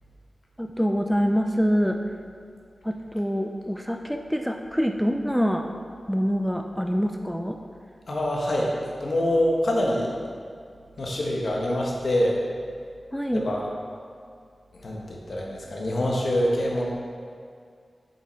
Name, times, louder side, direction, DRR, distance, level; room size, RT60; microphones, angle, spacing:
voice 1, 0.6-2.0 2.8-5.7 6.1-7.6 13.1-13.5, equal, ahead, 4 dB, 0.4 m, -25 dB
voice 2, 8.1-8.7 9.0-10.1 11.0-12.4 13.3-13.6 14.7-16.9, left 1 dB, 65° left, -2 dB, 1.3 m, -25 dB
7.4 x 5.7 x 4.5 m, 2.3 s
wide cardioid pair, 100°, 0 cm